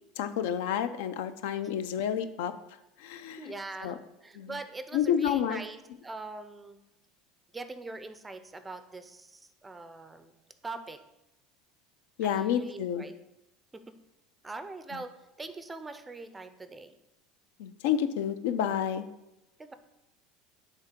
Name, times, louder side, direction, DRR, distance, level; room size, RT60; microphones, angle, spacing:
voice 1, 0.2-2.5 3.0-3.5 3.8-3.9 4.4-4.5 4.9-5.6 12.2-13.0 17.6-19.0, left 9 dB, 85° left, 11 dB, 0.5 m, -29 dB
voice 2, 3.4-6.8 7.5-10.3 10.6-11.0 12.2-13.1 13.7-14.0 14.4-15.1 15.4-16.9 19.6-19.7, right 3 dB, 10° right, 10 dB, 0.4 m, -42 dB
7.3 x 3.4 x 5.1 m, 0.91 s
cardioid pair, 150°, 0 cm